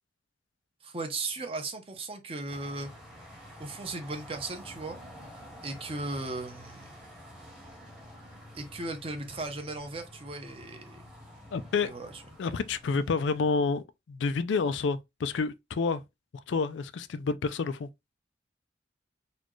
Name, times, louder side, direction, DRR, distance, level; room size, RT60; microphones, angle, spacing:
voice 1, 0.8-2.9 3.6-5.0 5.6-7.0 8.5-11.0 11.8-12.1, right 2 dB, 30° right, 0.7 m, -37 dB
sound 1, 2.5-13.5, equal, 5° right, 0.9 m, -49 dB
voice 2, 11.5-11.9 12.4-16.0 16.3-17.9, left 4 dB, 85° left, 0.4 m, -29 dB
4.1 x 2.4 x 3.0 m
head